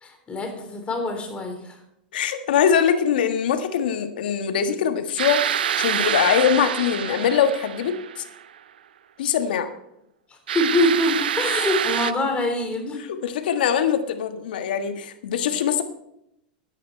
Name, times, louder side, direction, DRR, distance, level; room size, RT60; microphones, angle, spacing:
voice 1, 0.0-1.8 10.3-13.0, left 1 dB, 20° left, 4 dB, 3.6 m, -25 dB
voice 2, 2.1-8.2 9.2-9.7 13.1-15.8, left 8 dB, 75° left, 9 dB, 1.5 m, -22 dB
sound 1, 5.2-8.4 10.5-12.1, right 9 dB, 85° right, 0.6 m, -26 dB
13.5 x 9.9 x 4.5 m, 0.80 s
hypercardioid pair, 105°, 5 cm